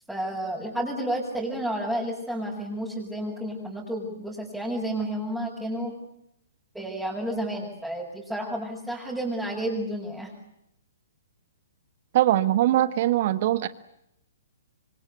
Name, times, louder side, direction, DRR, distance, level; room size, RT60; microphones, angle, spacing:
voice 1, 0.1-5.9 6.7-10.3, right 1 dB, 5° right, -5 dB, 7.0 m, -31 dB
voice 2, 12.1-13.7, right 13 dB, 50° right, 14 dB, 1.4 m, -21 dB
27.0 x 25.0 x 8.4 m, 0.80 s
figure-of-eight pair, 120°, 0 cm